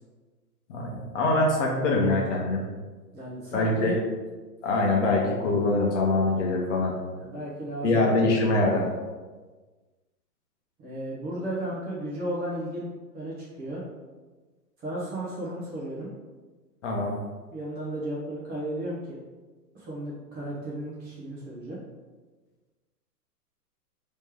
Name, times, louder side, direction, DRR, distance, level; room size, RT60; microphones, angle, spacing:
voice 1, 0.7-2.6 3.5-4.0 4.6-6.9 7.8-8.9 16.8-17.1, left 2 dB, 45° left, -1 dB, 1.0 m, -24 dB
voice 2, 3.1-4.0 7.2-8.2 10.8-13.8 14.8-16.1 17.5-19.2 19.7-21.8, right 1 dB, 20° right, -6 dB, 0.7 m, -34 dB
3.1 x 3.1 x 3.5 m, 1.3 s
hypercardioid pair, 120°, 49 cm